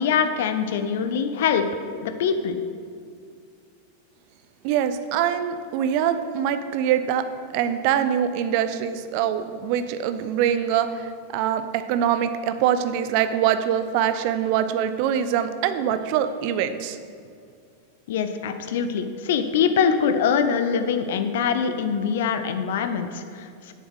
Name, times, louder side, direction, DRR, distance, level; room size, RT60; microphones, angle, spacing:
voice 1, 0.0-1.6 2.0-2.6 18.1-23.7, left 7 dB, 55° left, 8 dB, 0.6 m, -23 dB
voice 2, 4.6-7.2 7.5-17.0, right 9 dB, 45° right, 11 dB, 0.6 m, -24 dB
8.2 x 7.1 x 6.3 m, 2.3 s
figure-of-eight pair, 90°, 0 cm